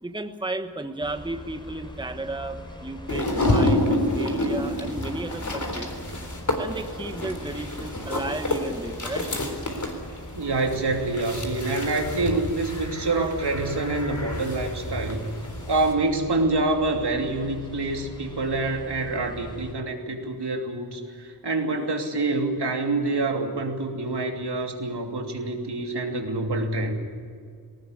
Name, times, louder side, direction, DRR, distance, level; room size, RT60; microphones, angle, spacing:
voice 1, 0.0-5.9 6.6-9.3 21.6-22.0, right 2 dB, 10° right, 7 dB, 1.2 m, -34 dB
sound 1, 1.0-19.7, equal, 10° left, 3.8 m, -42 dB
sound 2, 3.1-15.9, left 1 dB, 45° left, 3.8 m, -29 dB
voice 2, 10.4-15.3 15.7-26.9, right 2 dB, 75° right, 2 dB, 2.9 m, -26 dB
20.0 x 18.5 x 9.8 m, 2.1 s
wide cardioid pair, 75°, 41 cm